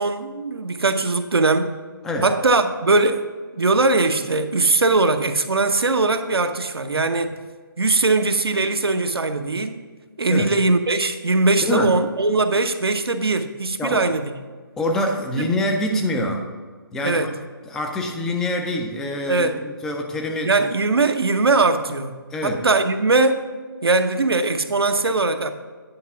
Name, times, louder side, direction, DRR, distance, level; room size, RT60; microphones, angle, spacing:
voice 1, 0.0-1.7 2.2-3.2 3.5-7.4 7.8-9.8 10.2-14.3 15.4-15.5 17.0-17.3 19.3-19.6 20.5-23.4 23.8-25.5, right 3 dB, 90° right, 8 dB, 0.8 m, -20 dB
voice 2, 11.6-11.9 13.8-14.1 14.8-16.4 16.9-17.4 17.7-20.5 22.3-22.6, left 1 dB, 5° left, 3 dB, 0.3 m, -25 dB
9.7 x 4.6 x 5.8 m, 1.5 s
figure-of-eight pair, 155°, 12 cm